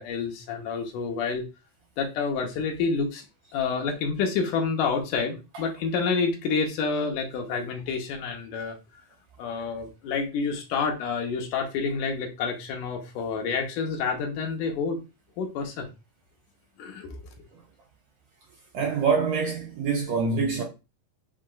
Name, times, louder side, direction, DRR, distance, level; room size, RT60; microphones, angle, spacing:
voice 1, 0.0-1.5 2.0-3.3 3.5-8.8 9.4-15.0 15.4-15.9 16.8-17.3, left 5 dB, 75° left, 2.2 m, -28 dB
voice 2, 18.7-20.6, right 5 dB, 70° right, 1.7 m, -25 dB
7.2 x 2.9 x 2.2 m
omnidirectional pair, 3.9 m